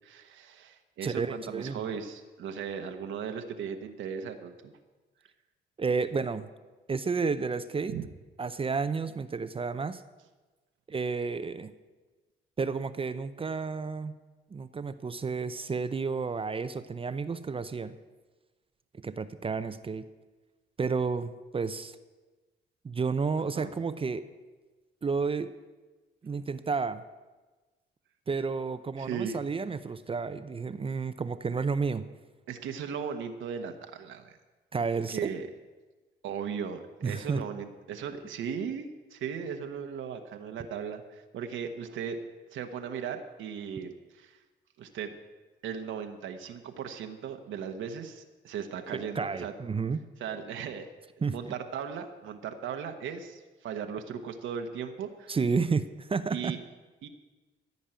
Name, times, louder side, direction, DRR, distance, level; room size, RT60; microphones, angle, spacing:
voice 1, 0.0-4.7 7.9-8.0 23.5-23.7 29.0-29.4 32.5-34.4 35.1-35.5 36.2-42.2 42.5-44.4 44.8-45.1 45.6-49.5 50.2-50.9 51.3-55.3 56.3-56.6 57.0-57.1, right 7 dB, 75° right, 6 dB, 1.1 m, -37 dB
voice 2, 1.0-1.8 5.8-6.5 6.9-7.9 8.4-10.0 10.9-11.7 12.6-14.1 14.5-17.9 19.0-20.1 20.8-22.0 22.8-24.2 25.0-25.5 26.2-27.0 28.3-32.1 34.7-35.3 37.0-37.4 48.9-50.0 51.2-51.3 55.3-56.6, right 4 dB, 30° right, 12 dB, 0.6 m, -31 dB
15.0 x 5.4 x 8.9 m, 1.2 s
cardioid pair, 90°, 20 cm